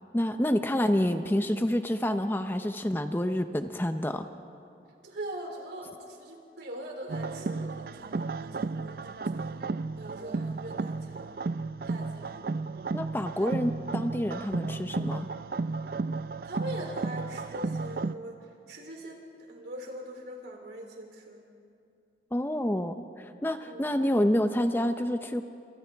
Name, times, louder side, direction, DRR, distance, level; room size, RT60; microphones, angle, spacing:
voice 1, 0.1-4.3 12.9-15.3 22.3-25.4, left 1 dB, 10° left, 8 dB, 0.6 m, -28 dB
voice 2, 5.0-9.5 10.0-11.3 11.9-12.4 13.0-13.5 16.5-18.4 18.7-19.2 19.5-21.4 23.6-23.9, right 1 dB, 70° right, 1 dB, 3.4 m, -42 dB
sound 1, 7.1-18.1, right 3 dB, 55° right, 0.4 m, -33 dB
29.0 x 27.0 x 3.4 m, 2.5 s
head